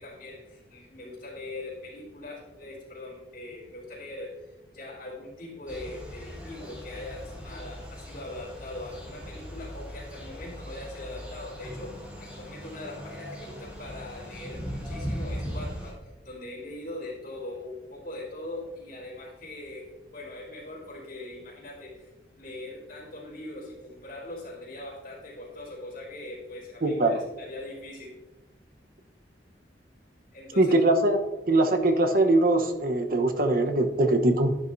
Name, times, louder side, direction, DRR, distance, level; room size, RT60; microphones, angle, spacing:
voice 1, 0.0-22.1 22.4-28.1 30.3-30.8, left 2 dB, 50° left, -10 dB, 3.8 m, -41 dB
sound 1, 5.7-15.9, equal, 10° right, 3.6 m, -39 dB
voice 2, 26.8-27.2 30.6-31.2 31.5-34.6, right 2 dB, 55° right, 5 dB, 1.0 m, -22 dB
11.5 x 10.5 x 2.7 m, 1.1 s
head